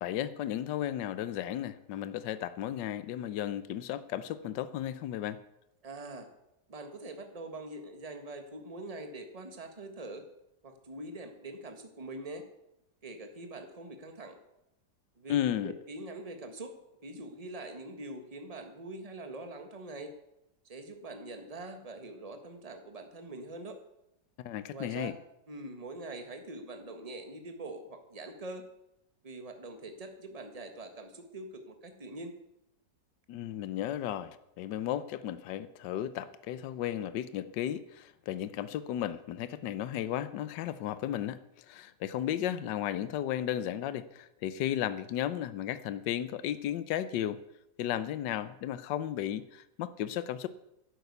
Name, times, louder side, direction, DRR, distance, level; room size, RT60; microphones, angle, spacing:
voice 1, 0.0-5.4 15.3-15.7 24.4-25.1 33.3-47.4 47.8-50.5, left 11 dB, 75° left, 14 dB, 1.4 m, -34 dB
voice 2, 5.8-6.3 6.7-10.2 10.6-12.4 13.0-14.4 15.2-15.4 15.6-16.7 17.0-20.1 20.6-23.8 24.7-25.2 25.5-28.6 29.2-32.3, right 2 dB, 20° right, 6 dB, 1.6 m, -43 dB
11.5 x 11.0 x 8.1 m, 0.84 s
omnidirectional pair, 1.9 m